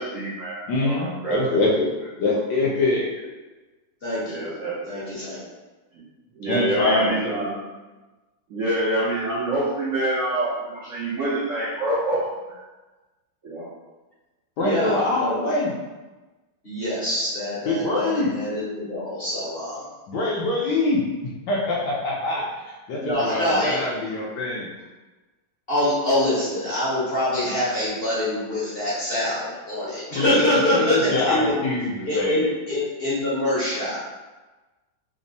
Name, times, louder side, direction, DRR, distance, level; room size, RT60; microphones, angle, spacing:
voice 1, 0.0-1.6 4.2-5.1 5.9-6.0 6.4-7.6 8.5-12.6 13.4-13.7, right 1 dB, 65° right, -10 dB, 0.8 m, -26 dB
voice 2, 0.7-1.9 2.2-3.1 6.5-7.4 14.6-15.7 17.6-18.3 20.1-21.0 21.5-22.5 22.9-24.7 30.1-32.5, left 2 dB, 70° left, -4 dB, 1.1 m, -24 dB
voice 3, 4.0-4.4 4.9-5.4 14.6-15.5 16.6-19.8 23.0-23.8 25.7-31.6 32.1-34.0, left 1 dB, 45° left, -9 dB, 0.8 m, -25 dB
3.5 x 2.0 x 3.9 m, 1.2 s
omnidirectional pair, 2.2 m